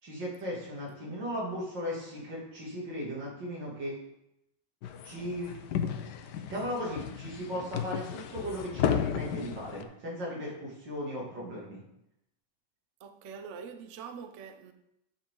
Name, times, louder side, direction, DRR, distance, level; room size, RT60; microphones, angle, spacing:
voice 1, 0.0-4.0 5.0-5.6 6.5-11.8, equal, 85° right, 3.3 m, -37 dB
sound 1, 4.8-9.8, left 8 dB, 75° left, 1.3 m, -34 dB
voice 2, 13.0-14.7, right 6 dB, 55° right, 0.9 m, -44 dB
10.5 x 6.7 x 3.8 m
omnidirectional pair, 1.9 m